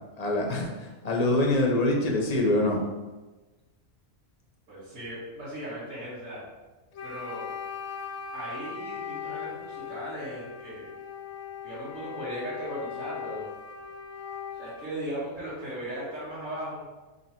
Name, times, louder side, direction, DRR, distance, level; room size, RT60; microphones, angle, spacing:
voice 1, 0.2-2.8, left 1 dB, 40° left, 0 dB, 0.6 m, -25 dB
voice 2, 4.7-6.4 7.0-7.5 8.3-10.9 11.6-13.5 14.5-16.8, right 1 dB, 80° right, -11 dB, 2.2 m, -37 dB
Wind instrument woodwind instrument, 6.9-15.0, left 6 dB, 65° left, 0.9 m, -39 dB
3.9 x 3.2 x 4.3 m, 1.2 s
omnidirectional pair, 1.3 m